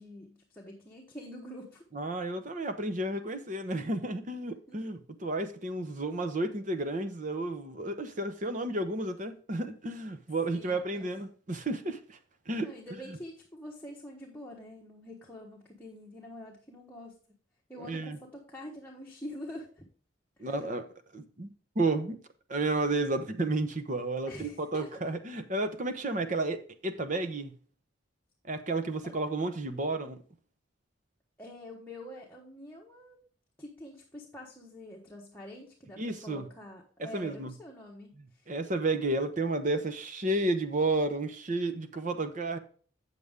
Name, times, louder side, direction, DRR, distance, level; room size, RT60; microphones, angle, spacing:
voice 1, 0.0-1.9 4.7-4.8 10.5-11.1 12.6-17.1 17.7-19.8 20.4-20.6 24.3-25.0 29.0-29.1 31.4-33.2 33.6-38.5, left 1 dB, 10° left, 1.1 m, -46 dB
voice 2, 1.9-12.2 12.5-12.7 17.9-18.2 20.4-20.9 21.1-22.2 22.5-27.5 28.4-30.2 36.0-36.5 37.0-37.5 38.5-42.6, right 2 dB, 40° right, 0.8 m, -32 dB
8.0 x 6.9 x 3.6 m
head